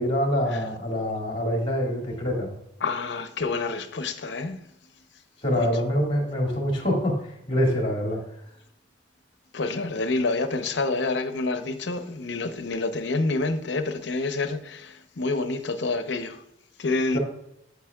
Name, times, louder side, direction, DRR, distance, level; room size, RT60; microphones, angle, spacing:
voice 1, 0.0-2.5 5.4-7.2 7.5-8.2 17.1-17.2, equal, 30° left, 2.1 m, -25 dB
voice 2, 2.8-4.6 5.6-5.7 9.5-16.4 16.8-17.2, left 3 dB, 65° left, 0.7 m, -28 dB
8.2 x 8.1 x 2.3 m
head